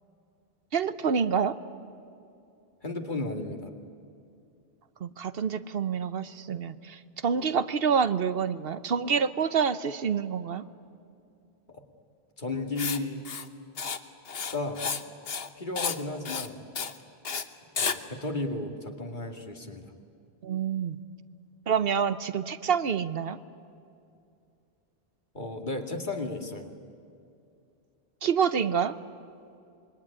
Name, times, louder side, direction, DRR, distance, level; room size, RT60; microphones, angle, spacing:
voice 1, 0.7-1.5 5.0-10.6 20.4-21.0 21.7-23.4 28.2-28.9, right 6 dB, 70° right, 13 dB, 1.0 m, -27 dB
voice 2, 2.8-3.7 11.7-11.8 12.4-13.3 14.5-14.8 15.6-16.6 17.8-19.9 25.3-26.7, left 2 dB, 50° left, 4 dB, 2.4 m, -34 dB
Writing, 12.8-13.0 13.3-13.5 13.8-14.0 14.3-15.0 15.3-15.5 15.8-16.0 16.3-16.5 16.8-16.9 17.3-17.4 17.8-18.0, left 6 dB, 70° left, 1.3 m, -31 dB
26.5 x 22.0 x 9.9 m, 2.6 s
omnidirectional pair, 1.0 m